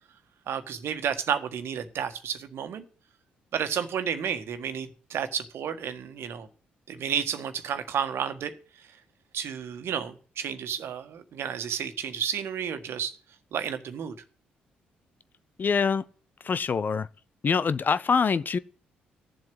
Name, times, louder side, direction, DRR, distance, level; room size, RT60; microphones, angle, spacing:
voice 1, 0.5-2.8 3.5-6.5 6.9-8.9 9.3-13.2 13.5-14.2, right 8 dB, 60° right, 1.6 m, -31 dB
voice 2, 15.6-16.0 16.4-17.1 17.4-18.6, left 5 dB, 40° left, 0.8 m, -24 dB
14.0 x 7.6 x 7.8 m
hypercardioid pair, 45°, 5 cm